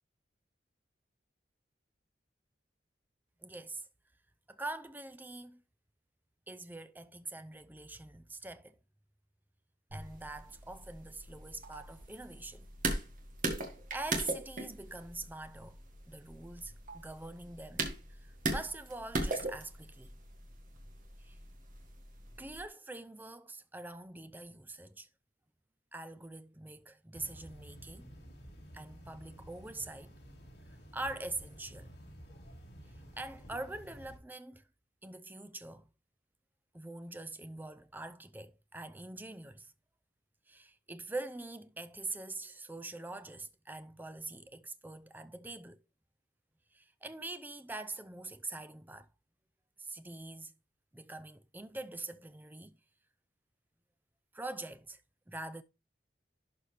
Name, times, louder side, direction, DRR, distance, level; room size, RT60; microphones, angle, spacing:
voice 1, 3.4-3.9 4.5-5.6 6.5-8.8 9.9-12.7 13.9-15.8 16.1-20.2 21.2-21.4 22.4-25.1 25.9-28.1 28.7-30.1 30.9-31.9 33.2-34.6 35.0-35.9 36.7-39.7 40.5-45.8 46.7-49.1 49.8-50.5 50.9-52.8 54.3-55.0 55.3-55.6, right 2 dB, 10° right, 0.5 m, -44 dB
sound 1, 9.9-22.6, right 2 dB, 50° right, 1.5 m, -40 dB
sound 2, 27.1-34.2, equal, 65° left, 2.1 m, -52 dB
11.5 x 4.2 x 3.3 m
head